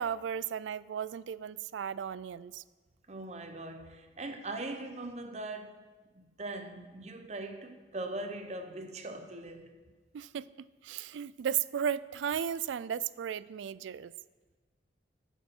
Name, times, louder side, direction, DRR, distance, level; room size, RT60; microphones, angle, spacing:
voice 1, 0.0-2.6 10.1-14.1, right 8 dB, 80° right, 0.3 m, -35 dB
voice 2, 3.1-5.8 6.1-9.8, right 2 dB, 35° right, 0.8 m, -41 dB
13.5 x 7.2 x 4.5 m
head